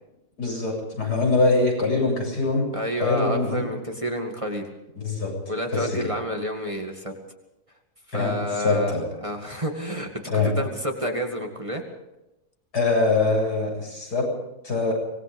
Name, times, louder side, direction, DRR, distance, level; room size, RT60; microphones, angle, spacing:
voice 1, 0.4-2.7 3.0-3.6 5.0-5.3 5.7-6.0 8.1-8.3 8.6-9.0 10.3-10.5 12.7-14.3 14.6-14.9, left 3 dB, 80° left, -1 dB, 8.4 m, -23 dB
voice 2, 2.7-4.7 5.5-7.1 8.1-8.9 9.2-11.8, equal, 20° right, 2 dB, 2.1 m, -29 dB
25.0 x 19.5 x 5.3 m, 0.93 s
omnidirectional pair, 1.7 m